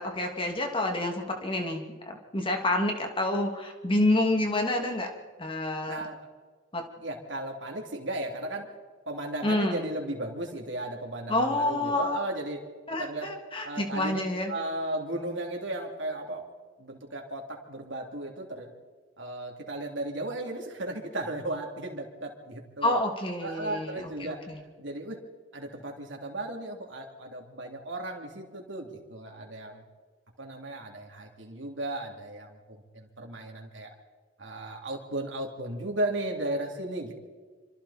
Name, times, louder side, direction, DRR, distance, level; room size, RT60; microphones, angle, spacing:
voice 1, 0.0-5.1 5.4-6.0 6.7-6.8 9.4-9.9 11.3-12.2 12.9-14.5 22.8-24.6, left 1 dB, 25° left, 3 dB, 2.6 m, -28 dB
voice 2, 5.9-6.2 7.0-8.7 9.1-12.6 13.0-13.3 13.6-14.2 14.5-16.5 16.8-18.7 19.2-23.0 23.4-24.4 24.8-25.2 25.5-29.8 30.4-33.9 34.4-37.1, right 1 dB, 70° right, 1 dB, 3.3 m, -35 dB
27.0 x 25.5 x 4.4 m, 1.5 s
head